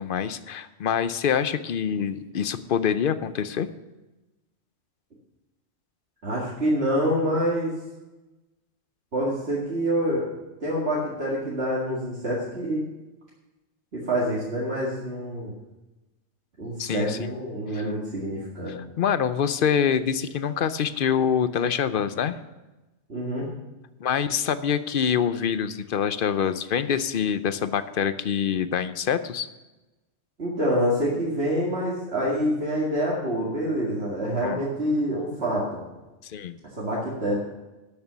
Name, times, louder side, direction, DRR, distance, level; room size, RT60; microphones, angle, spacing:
voice 1, 0.0-3.7 16.8-17.3 17.7-17.9 19.0-22.4 24.0-29.5 34.4-34.6 36.2-36.6, left 8 dB, 55° left, 13 dB, 0.7 m, -25 dB
voice 2, 6.2-7.7 9.1-10.2 10.6-12.8 13.9-15.5 16.6-18.7 23.1-23.5 30.4-35.8 36.8-37.4, equal, 60° right, -6 dB, 2.3 m, -26 dB
12.5 x 6.7 x 6.8 m, 1.1 s
omnidirectional pair, 1.2 m